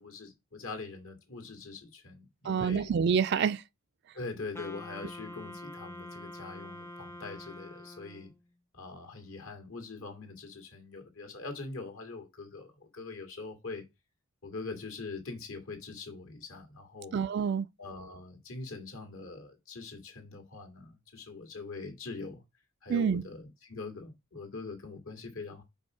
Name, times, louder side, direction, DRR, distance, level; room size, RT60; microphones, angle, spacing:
voice 1, 0.0-2.9 4.1-8.3 8.7-13.8 14.4-17.2 17.8-22.4 22.8-25.6, left 3 dB, 75° left, 2.1 m, -43 dB
voice 2, 2.4-3.6 17.1-17.7 22.9-23.2, right 6 dB, 50° right, 0.3 m, -27 dB
Wind instrument woodwind instrument, 4.5-8.4, left 1 dB, 10° left, 0.5 m, -45 dB
5.2 x 4.7 x 4.8 m
head